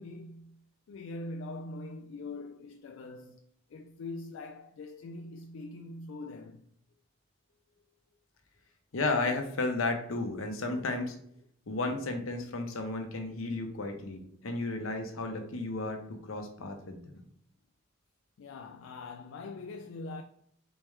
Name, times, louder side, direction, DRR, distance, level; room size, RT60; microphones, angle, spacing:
voice 1, 0.0-3.4 3.7-6.6 18.4-20.2, left 2 dB, 75° left, 0.3 m, -43 dB
voice 2, 8.9-11.1 11.7-17.1, left 2 dB, 90° left, 0.9 m, -33 dB
4.4 x 3.5 x 3.2 m
head